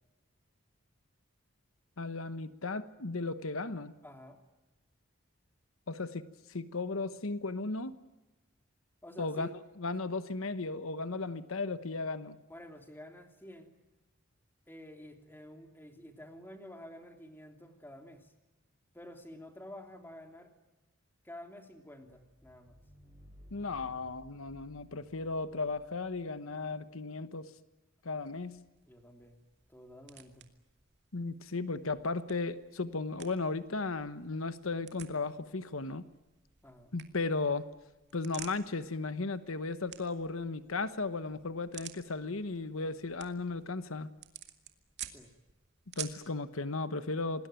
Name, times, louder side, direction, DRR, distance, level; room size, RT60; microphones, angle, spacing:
voice 1, 2.0-3.9 5.9-7.9 9.2-9.5 9.8-12.4 23.5-27.5 28.0-28.6 31.1-36.1 36.9-37.7 38.1-44.1 46.0-47.5, left 3 dB, 80° left, 12 dB, 1.2 m, -35 dB
voice 2, 4.0-4.4 9.0-9.5 12.5-13.7 14.7-18.3 18.9-20.5 21.2-22.8 28.8-29.4 29.7-30.5 36.6-36.9 45.1-45.3, left 1 dB, 10° left, 5 dB, 3.0 m, -50 dB
sound 1, 22.2-26.8, equal, 15° right, 5.8 m, -58 dB
sound 2, 28.2-46.3, right 11 dB, 55° right, 2.4 m, -52 dB
27.0 x 20.0 x 9.1 m, 1.0 s
head